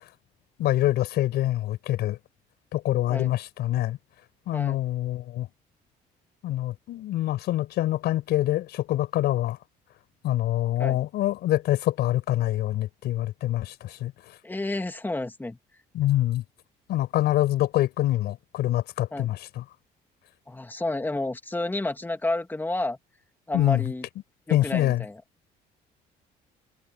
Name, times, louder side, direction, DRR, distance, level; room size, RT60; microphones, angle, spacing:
voice 1, 0.6-2.2 2.7-4.0 4.5-5.5 6.4-9.6 10.2-14.4 15.9-16.4 16.9-19.6 23.5-23.9 24.5-25.0, left 14 dB, 75° left, 5.1 m, -25 dB
voice 2, 14.4-15.6 19.1-19.3 20.5-23.0 23.5-24.1 24.5-25.2, left 2 dB, 10° left, 2.5 m, -30 dB
cardioid pair, 110°, 17 cm